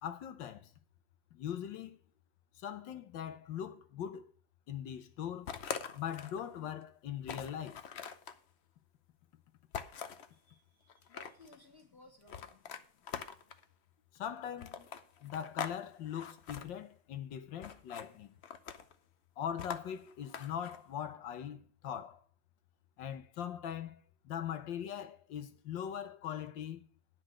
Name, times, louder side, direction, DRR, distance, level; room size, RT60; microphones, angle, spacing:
voice 1, 0.0-0.7 1.3-2.0 2.6-4.3 4.7-5.6 5.9-7.8 14.1-14.9 15.2-18.3 19.4-22.2 23.0-26.9, left 9 dB, 75° left, 1.6 m, -41 dB
sound 1, 5.5-6.4 6.8-6.9 7.2-8.4 9.7-10.3 10.9-11.6 12.3-13.6 14.6-15.8 16.1-16.7 17.6-18.1 18.4-19.0 19.6-20.8, left 7 dB, 55° left, 0.7 m, -43 dB
voice 2, 10.3-12.6, left 1 dB, 35° left, 2.2 m, -60 dB
10.0 x 6.3 x 7.5 m
omnidirectional pair, 2.0 m